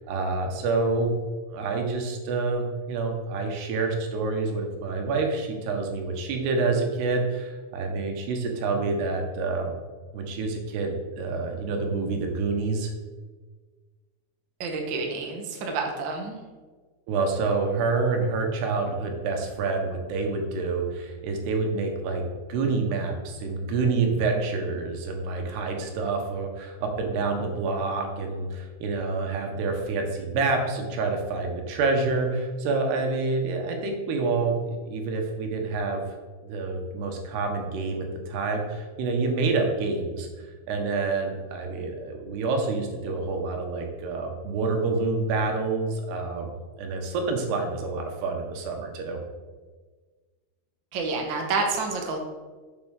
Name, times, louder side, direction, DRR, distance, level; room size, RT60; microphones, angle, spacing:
voice 1, 0.1-1.1 1.5-9.7 10.1-12.9 17.1-22.2 22.5-36.0 36.4-40.3 40.7-46.5 46.8-49.2, right 3 dB, 90° right, 3 dB, 3.5 m, -27 dB
voice 2, 14.6-16.4 50.9-52.2, right 4 dB, 60° right, 2 dB, 1.3 m, -29 dB
7.9 x 7.1 x 6.6 m, 1.4 s
omnidirectional pair, 4.5 m